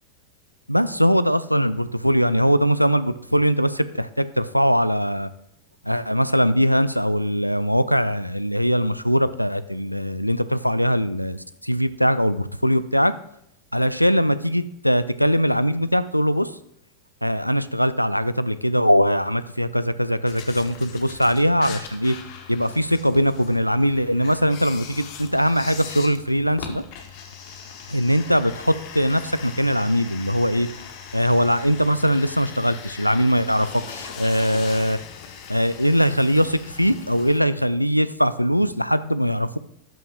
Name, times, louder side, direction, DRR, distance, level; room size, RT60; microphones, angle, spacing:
voice 1, 0.7-5.3 5.8-13.1 13.7-16.5 17.2-22.2 22.5-26.8 27.9-30.7 31.1-35.0 35.5-39.6, equal, 90° left, 15 dB, 0.3 m, -21 dB
sound 1, 20.3-37.4, left 7 dB, 45° left, 1.0 m, -40 dB
12.0 x 5.6 x 2.5 m, 0.76 s
figure-of-eight pair, 90°, 0 cm